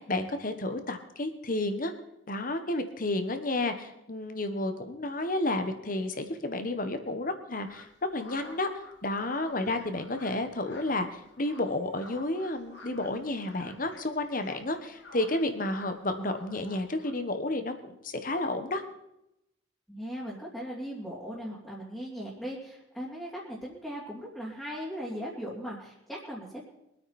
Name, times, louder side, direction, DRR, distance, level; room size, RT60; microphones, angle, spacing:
voice 1, 0.0-1.9 2.3-18.8, left 2 dB, 45° left, 8 dB, 1.4 m, -31 dB
sound 1, 7.6-17.1, left 2 dB, 60° left, 2.4 m, -52 dB
voice 2, 19.9-26.6, equal, 5° left, -7 dB, 3.0 m, -38 dB
23.5 x 9.3 x 4.4 m, 0.86 s
head